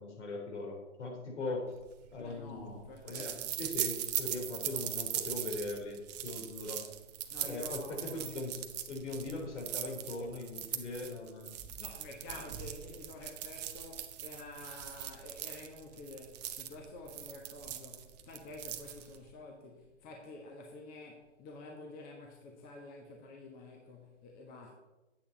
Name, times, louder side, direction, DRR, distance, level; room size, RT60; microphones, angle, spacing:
voice 1, 0.0-1.7 2.1-2.7 3.0-3.3 3.6-6.8 7.4-8.6 8.9-11.6 12.3-12.4, left 2 dB, 65° left, 0 dB, 3.9 m, -40 dB
sound 1, 1.9-19.3, right 11 dB, 35° right, 0.8 m, -40 dB
voice 2, 2.2-3.6 7.3-8.4 11.8-24.7, left 2 dB, 20° left, 1 dB, 1.4 m, -49 dB
9.9 x 8.5 x 4.1 m, 1.1 s
figure-of-eight pair, 125°, 38 cm